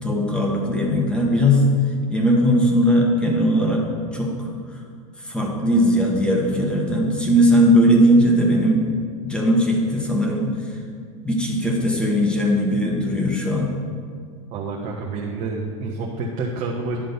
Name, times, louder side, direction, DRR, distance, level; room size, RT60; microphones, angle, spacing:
voice 1, 0.0-1.6 2.1-3.8 4.1-4.5 5.2-8.8 9.2-10.8 11.2-13.7, equal, 5° left, -1 dB, 1.7 m, -19 dB
voice 2, 14.5-17.0, right 3 dB, 45° right, -3 dB, 1.3 m, -28 dB
10.5 x 3.8 x 7.0 m, 2.1 s
hypercardioid pair, 100°, 18 cm